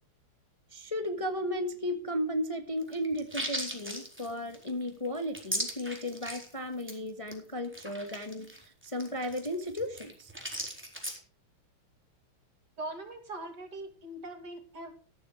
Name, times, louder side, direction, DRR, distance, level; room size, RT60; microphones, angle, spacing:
voice 1, 0.7-10.3, left 1 dB, 15° left, 6 dB, 1.5 m, -35 dB
sound 1, 2.8-6.5 6.8-7.0 7.3-7.4 7.6-11.2, equal, 5° right, 4.0 m, -38 dB
voice 2, 12.8-14.9, right 2 dB, 50° right, 6 dB, 3.2 m, -41 dB
14.5 x 14.0 x 3.3 m, 0.39 s
omnidirectional pair, 2.4 m